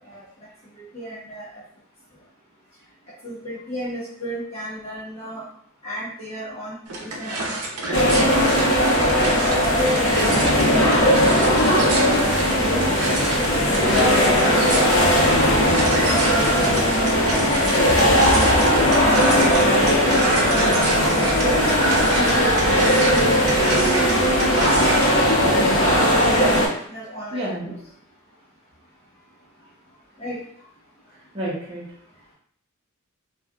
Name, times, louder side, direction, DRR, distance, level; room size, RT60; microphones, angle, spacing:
voice 1, 0.8-1.6 3.2-5.5 5.8-7.4 7.8-8.2 8.5-8.9 9.5-10.3 10.6-11.0 11.3-15.9 16.4-18.1 18.7-19.7 21.0-21.6 22.1-22.6 22.8-24.6 25.0-27.8 30.2-30.4, equal, 30° left, -9 dB, 0.9 m, -34 dB
sound 1, 6.9-25.2, right 2 dB, 85° right, 0.6 m, -28 dB
sound 2, 7.9-26.7, equal, 65° left, 0.7 m, -18 dB
voice 2, 27.3-27.8 31.1-31.8, right 1 dB, 25° right, -7 dB, 0.8 m, -31 dB
3.2 x 2.4 x 2.3 m, 0.62 s
head